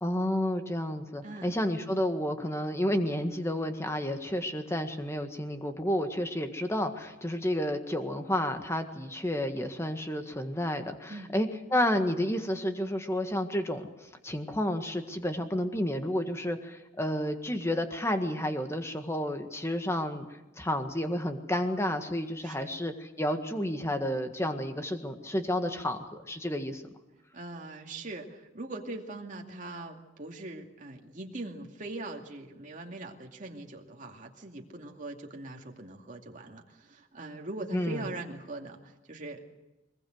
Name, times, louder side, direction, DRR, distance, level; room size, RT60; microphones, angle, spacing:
voice 1, 0.0-13.9 14.2-20.3 20.6-26.8 37.7-38.0, left 1 dB, 15° left, 6 dB, 1.7 m, -31 dB
voice 2, 1.2-1.5 11.1-11.4 22.4-22.8 27.3-39.4, right 2 dB, 45° right, 1 dB, 2.4 m, -41 dB
22.5 x 20.5 x 8.0 m, 1.0 s
head